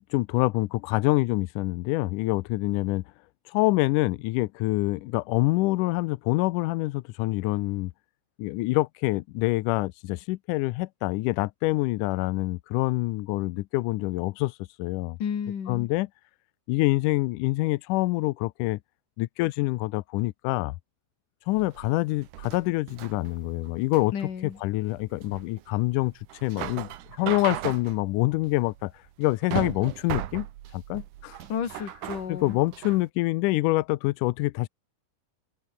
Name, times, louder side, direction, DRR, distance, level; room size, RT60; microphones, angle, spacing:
voice 1, 0.0-3.0 3.5-7.9 8.4-15.2 15.7-16.1 16.7-18.8 19.2-20.8 21.5-24.1 24.6-26.1 26.4-28.9 29.2-30.5 30.7-31.4 32.3-34.7, left 20 dB, 85° left, 1.9 m, -26 dB
voice 2, 15.2-15.9 24.1-24.6 31.5-32.6, left 7 dB, 60° left, 4.4 m, -32 dB
sound 1, 21.5-33.1, right 13 dB, 65° right, 2.5 m, -37 dB
open air
omnidirectional pair, 4.2 m